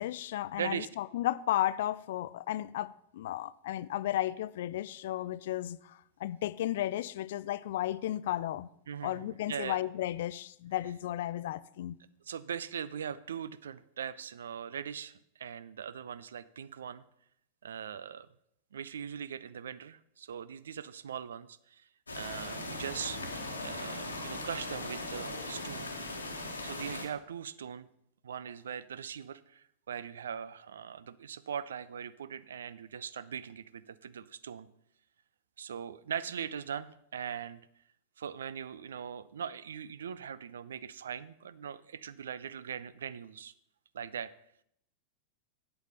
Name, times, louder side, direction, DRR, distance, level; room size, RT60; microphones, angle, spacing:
voice 1, 0.0-8.7 9.0-12.0, left 13 dB, 55° left, 0.3 m, -34 dB
voice 2, 8.9-9.8 12.3-17.0 17.6-18.3 18.7-21.8 22.1-23.2 23.6-25.9 26.6-27.9 28.2-34.7 35.6-37.6 38.2-43.5 43.9-44.3, right 8 dB, 65° right, 0.4 m, -40 dB
sound 1, 22.1-27.1, left 2 dB, 75° left, 1.2 m, -39 dB
8.3 x 8.0 x 5.5 m
figure-of-eight pair, 90°, 0 cm